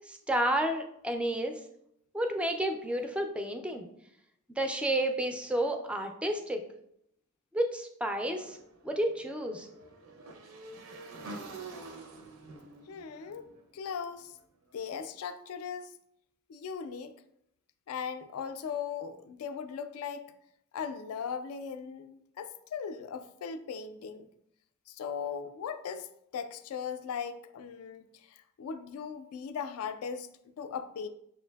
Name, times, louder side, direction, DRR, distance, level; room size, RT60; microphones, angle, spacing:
voice 1, 0.1-1.5 2.1-3.9 4.6-6.6 7.5-8.6 8.8-9.7, right 1 dB, 5° right, 5 dB, 0.3 m, -31 dB
Motorcycle / Engine, 8.3-14.4, right 3 dB, 70° right, 0.5 m, -47 dB
voice 2, 12.9-13.5 13.7-14.4 14.7-15.9 16.5-17.1 17.9-20.2 20.7-24.3 24.9-31.1, left 6 dB, 75° left, 10 dB, 0.3 m, -38 dB
6.3 x 2.5 x 2.2 m, 0.75 s
head